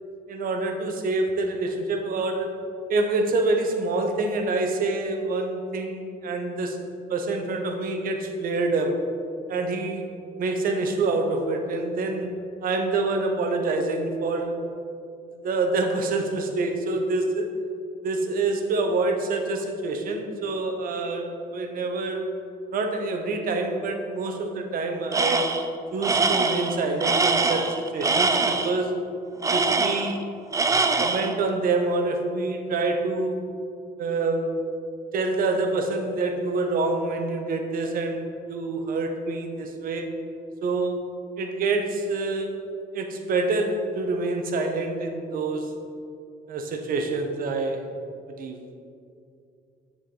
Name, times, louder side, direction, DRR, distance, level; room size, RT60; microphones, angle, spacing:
voice 1, 0.3-2.6 2.9-6.8 7.1-9.0 9.5-10.0 10.4-12.3 12.6-14.6 15.4-17.5 18.0-22.2 22.7-25.5 25.9-29.0 29.5-30.2 31.0-33.4 34.0-34.6 35.1-40.1 40.6-41.0 41.4-42.5 42.9-45.7 46.5-47.9 48.4-48.6, right 3 dB, 60° right, 4 dB, 1.1 m, -26 dB
Tools, 25.1-25.7 26.0-28.8 29.4-30.2 30.5-31.4, right 3 dB, 20° right, 0.5 m, -23 dB
7.3 x 7.1 x 3.9 m, 2.5 s
cardioid pair, 110°, 17 cm